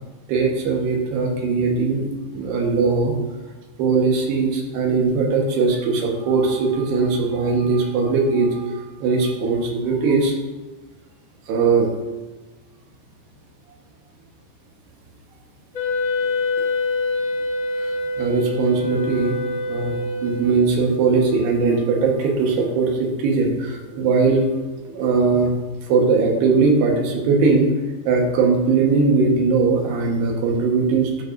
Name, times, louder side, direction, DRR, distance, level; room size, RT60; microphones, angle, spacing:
voice 1, 0.3-2.1 2.3-3.1 3.8-8.6 9.0-10.3 11.5-11.9 17.8-17.9 18.2-19.9 20.2-24.5 24.9-25.5 25.9-27.7 28.1-31.2, right 4 dB, 75° right, 0 dB, 3.3 m, -20 dB
Wind instrument woodwind instrument, 15.7-20.9, left 2 dB, 35° left, 1.2 m, -25 dB
12.0 x 10.0 x 2.6 m, 1.2 s
omnidirectional pair, 5.0 m